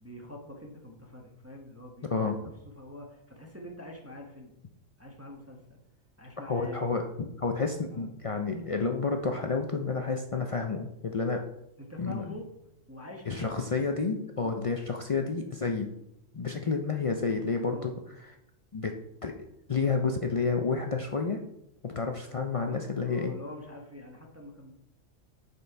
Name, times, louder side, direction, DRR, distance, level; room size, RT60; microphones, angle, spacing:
voice 1, 0.0-4.5 5.0-5.8 6.2-6.8 7.9-8.1 11.8-12.5 12.9-13.6 14.4-14.7 17.6-17.9 22.4-24.7, left 1 dB, 10° right, 0 dB, 1.0 m, -45 dB
voice 2, 2.1-2.5 6.5-11.4 12.0-12.3 13.3-15.9 16.3-17.9 18.7-18.9 19.2-19.3 19.7-21.4 21.8-23.3, left 4 dB, 60° left, 4 dB, 0.3 m, -30 dB
6.7 x 5.4 x 4.5 m, 0.82 s
omnidirectional pair, 1.3 m